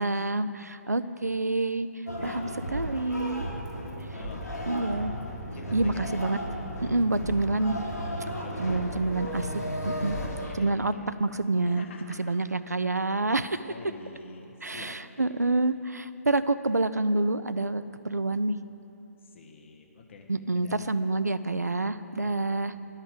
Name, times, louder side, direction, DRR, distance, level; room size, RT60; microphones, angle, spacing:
voice 1, 0.0-1.9 2.2-3.5 4.7-5.1 5.7-6.4 6.8-7.8 8.6-9.5 9.9-10.2 10.5-10.9 11.2-11.9 12.2-13.7 14.6-18.6 20.3-22.7, right 2 dB, 85° right, 13 dB, 0.4 m, -27 dB
sound 1, 2.1-10.5, equal, 85° left, 1.9 m, -34 dB
voice 2, 4.1-4.7 5.5-6.0 8.2-8.9 10.2-11.1 11.6-12.3 13.6-15.0 19.3-20.9 22.2-22.9, left 4 dB, 45° left, 3 dB, 1.1 m, -47 dB
10.5 x 5.6 x 7.6 m, 2.9 s
figure-of-eight pair, 135°, 9 cm